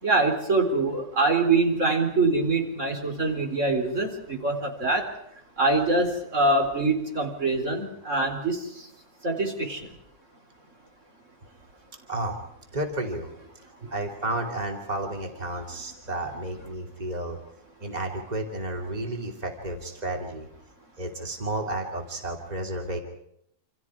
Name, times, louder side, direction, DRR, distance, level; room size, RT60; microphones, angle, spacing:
voice 1, 0.0-5.1 5.6-8.6 9.2-9.8, right 3 dB, 50° right, 3 dB, 4.4 m, -24 dB
voice 2, 12.1-12.4 12.7-13.3 13.9-17.4 17.8-20.5 21.0-23.0, right 2 dB, 25° right, 2 dB, 2.9 m, -32 dB
28.5 x 28.0 x 4.8 m, 0.73 s
omnidirectional pair, 1.6 m